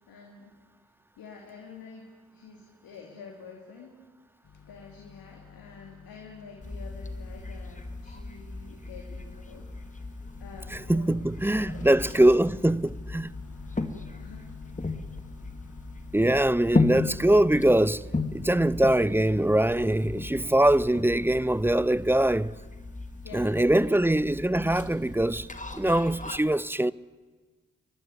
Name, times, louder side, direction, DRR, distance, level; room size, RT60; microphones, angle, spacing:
voice 1, 0.1-0.5 1.2-4.0 4.7-10.1 10.4-11.3 11.6-11.9 14.2-14.6 23.2-24.1, left 5 dB, 80° left, 2.8 m, -48 dB
Microwave oven, 4.4-22.7, left 7 dB, 60° left, 1.8 m, -51 dB
sound 1, 6.6-26.4, left 3 dB, 20° left, 2.3 m, -35 dB
voice 2, 10.7-13.3 16.1-22.6 23.3-25.5 25.7-26.9, right 1 dB, 5° right, 0.6 m, -23 dB
30.0 x 12.0 x 9.8 m
supercardioid pair, 45°, 35 cm